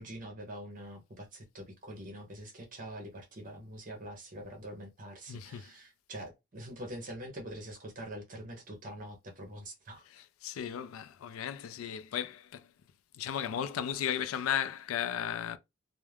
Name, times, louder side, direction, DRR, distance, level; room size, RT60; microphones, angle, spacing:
voice 1, 0.0-10.0, right 1 dB, 40° right, 0.6 m, -44 dB
voice 2, 5.3-5.7 10.1-12.7 13.2-15.6, left 9 dB, 90° left, 0.3 m, -35 dB
2.3 x 2.0 x 3.2 m
head